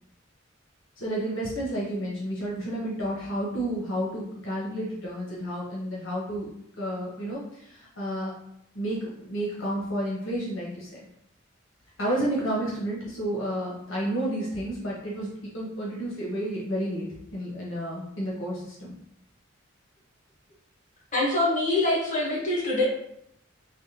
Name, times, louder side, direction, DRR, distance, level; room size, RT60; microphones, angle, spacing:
voice 1, 1.0-6.5 6.8-8.3 8.7-11.0 12.0-17.1 17.3-18.9, right 1 dB, 70° left, -5 dB, 0.9 m, -31 dB
voice 2, 21.1-22.8, left 2 dB, 40° left, -4 dB, 1.1 m, -24 dB
3.4 x 2.2 x 2.8 m, 0.73 s
head